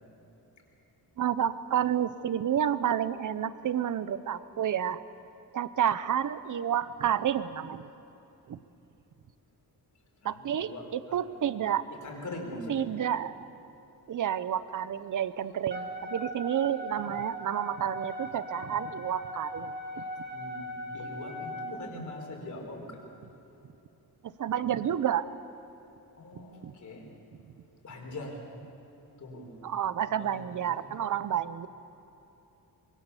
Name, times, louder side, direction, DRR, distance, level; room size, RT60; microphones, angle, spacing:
voice 1, 1.2-5.0 5.5-7.9 8.5-8.6 10.2-11.8 12.7-13.5 14.1-20.0 24.2-25.2 26.6-26.7 29.6-31.7, right 9 dB, 55° right, 15 dB, 0.9 m, -30 dB
voice 2, 10.2-10.9 11.1-11.5 12.0-12.9 20.3-23.0 26.2-27.1 27.8-28.4 29.2-29.5 30.2-30.9, left 1 dB, 50° left, 1 dB, 4.7 m, -42 dB
Wind instrument woodwind instrument, 15.7-21.8, equal, 30° right, 2.7 m, -39 dB
24.5 x 22.0 x 7.1 m, 2.9 s
wide cardioid pair, 140°, 38 cm